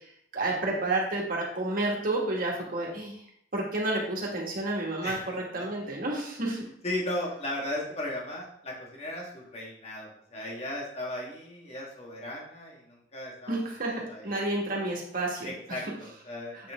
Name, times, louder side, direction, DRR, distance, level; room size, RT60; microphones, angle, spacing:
voice 1, 0.3-3.2 3.5-6.6 13.5-15.8 16.5-16.7, right 2 dB, 55° right, -2 dB, 1.9 m, -30 dB
voice 2, 6.8-13.6 14.1-14.5 15.4-16.7, left 1 dB, 35° left, -2 dB, 1.8 m, -36 dB
7.8 x 4.4 x 3.6 m, 0.67 s
head